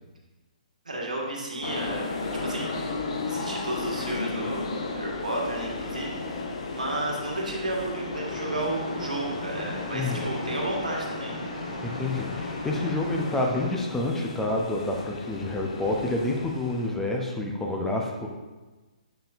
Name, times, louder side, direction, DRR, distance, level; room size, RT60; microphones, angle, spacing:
voice 1, 0.8-6.2 6.5-11.3, right 2 dB, 75° right, -1 dB, 1.5 m, -33 dB
sound 1, 1.6-16.9, left 3 dB, 50° left, 0.8 m, -35 dB
sound 2, 8.1-13.7, left 1 dB, 70° left, 1.8 m, -37 dB
voice 2, 9.9-10.3 11.8-18.3, left 2 dB, 5° left, 0 dB, 0.6 m, -28 dB
7.0 x 5.5 x 2.6 m, 1.2 s
figure-of-eight pair, 130°, 4 cm